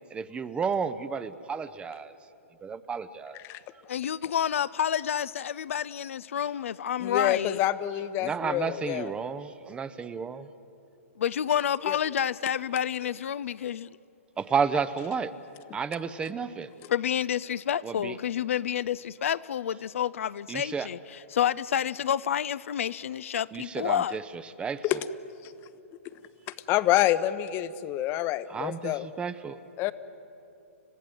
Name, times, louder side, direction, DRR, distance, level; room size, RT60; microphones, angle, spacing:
voice 1, 0.1-2.1 2.6-3.4 8.2-10.5 13.6-13.7 14.4-15.3 15.7-16.7 17.8-18.2 20.5-20.9 23.5-25.0 28.5-29.6, right 6 dB, 15° right, 0.7 m, -32 dB
voice 2, 3.9-7.6 11.2-13.9 16.9-24.2, left 9 dB, 65° left, 0.5 m, -29 dB
voice 3, 7.0-9.1 11.9-12.0 24.8-25.0 26.7-29.1 29.8-29.9, left 14 dB, 30° left, 0.9 m, -27 dB
29.5 x 15.5 x 7.8 m
hypercardioid pair, 125°, 8 cm